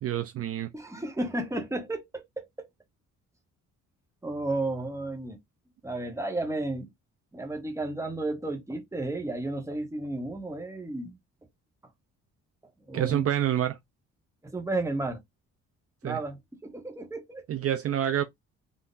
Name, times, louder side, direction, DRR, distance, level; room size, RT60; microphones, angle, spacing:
voice 1, 0.0-0.7 12.9-13.8 16.0-16.2 17.5-18.2, right 11 dB, 50° right, 0.5 m, -27 dB
voice 2, 0.7-2.7 4.2-5.4 5.8-6.9 7.3-11.2 12.9-13.3 14.4-15.2 16.0-17.5, right 2 dB, 10° right, 1.0 m, -33 dB
3.6 x 2.6 x 2.4 m
cardioid pair, 90°, 30 cm